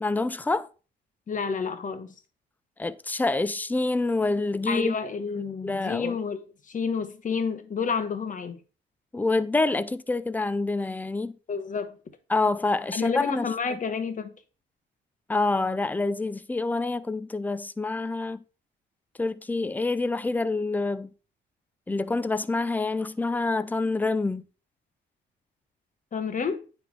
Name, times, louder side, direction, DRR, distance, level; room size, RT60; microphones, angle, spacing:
voice 1, 0.0-0.7 2.8-5.0 5.6-6.1 9.1-11.4 12.3-13.8 15.3-18.4 19.2-21.1 21.9-24.4, left 3 dB, 10° left, 0.4 m, -27 dB
voice 2, 1.3-2.1 4.7-8.6 11.5-11.9 12.9-14.3 26.1-26.6, left 5 dB, 40° left, 1.1 m, -30 dB
9.3 x 3.4 x 4.6 m
cardioid pair, 90°, 20 cm